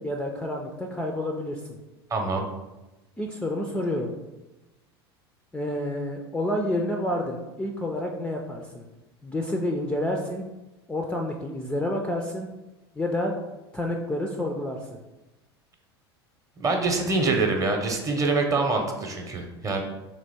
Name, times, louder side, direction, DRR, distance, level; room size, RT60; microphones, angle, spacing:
voice 1, 0.0-1.8 3.2-4.1 5.5-8.8 9.2-10.5 10.9-12.5 13.0-13.3 13.7-15.0, left 1 dB, 10° left, 1 dB, 0.4 m, -29 dB
voice 2, 2.1-2.4 16.6-19.8, right 3 dB, 25° right, 3 dB, 0.8 m, -25 dB
3.4 x 3.0 x 4.1 m, 1.0 s
hypercardioid pair, 80°, 13 cm